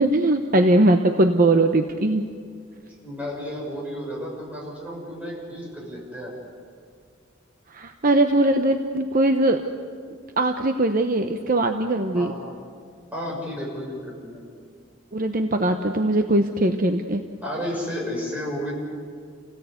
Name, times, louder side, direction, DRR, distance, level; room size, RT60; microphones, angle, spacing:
voice 1, 0.0-2.3 7.7-9.6 10.1-12.3 15.1-17.2, right 1 dB, 45° right, 6 dB, 0.9 m, -20 dB
voice 2, 3.0-6.3 12.1-12.5 13.1-14.4 17.4-18.7, equal, 5° right, -4 dB, 6.6 m, -32 dB
29.5 x 17.5 x 8.2 m, 2.1 s
head